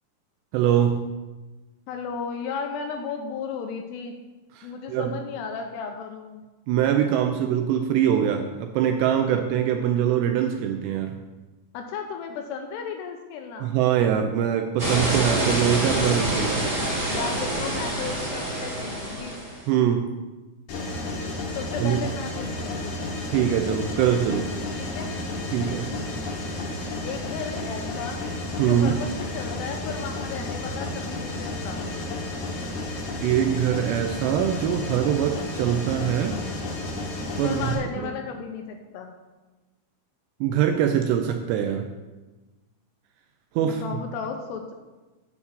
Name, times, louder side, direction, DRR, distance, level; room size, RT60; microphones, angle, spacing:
voice 1, 0.5-1.1 4.6-5.1 6.7-11.2 13.6-16.7 19.7-20.1 21.8-22.1 23.3-24.5 25.5-25.9 28.6-29.0 33.2-36.4 37.4-37.6 38.0-38.1 40.4-41.9 43.6-43.8, right 9 dB, 80° right, 5 dB, 2.6 m, -23 dB
voice 2, 1.9-4.2 4.6-6.4 11.7-13.8 17.1-19.4 21.4-23.0 24.8-25.1 27.0-28.2 28.5-31.8 37.4-39.1 43.6-44.7, left 6 dB, 85° left, 4 dB, 2.5 m, -34 dB
sound 1, 14.8-19.6, right 1 dB, 55° right, 0.5 m, -26 dB
Mechanisms, 20.7-37.7, left 2 dB, 65° left, 2.1 m, -32 dB
8.4 x 4.7 x 6.9 m, 1.2 s
omnidirectional pair, 5.2 m